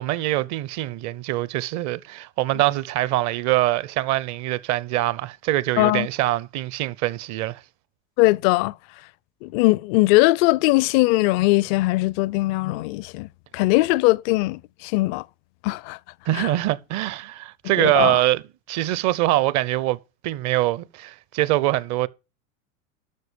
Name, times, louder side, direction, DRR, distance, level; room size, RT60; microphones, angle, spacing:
voice 1, 0.0-7.6 16.3-18.4 18.7-22.1, right 16 dB, 45° right, 0.8 m, -23 dB
voice 2, 5.8-6.1 8.2-8.8 9.4-15.2 15.6-16.0 16.3-16.5 17.8-18.2, left 21 dB, 45° left, 0.5 m, -20 dB
12.0 x 6.2 x 5.1 m
hypercardioid pair, 95°, 40 cm